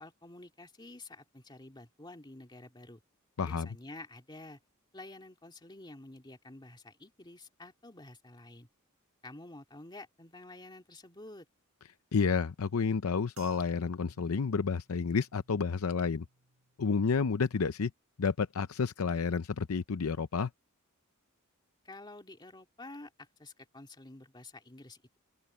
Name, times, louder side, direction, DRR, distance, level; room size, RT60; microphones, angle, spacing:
voice 1, 0.0-3.0 3.5-4.6 4.9-8.7 9.2-11.5 21.8-25.2, left 2 dB, 20° left, 2.6 m, -50 dB
voice 2, 3.4-3.7 12.1-16.2 16.8-17.9 18.2-20.5, left 5 dB, 80° left, 0.6 m, -30 dB
sound 1, 13.3-17.9 18.2-18.8 19.4-19.7, right 6 dB, 75° right, 4.9 m, -63 dB
open air
head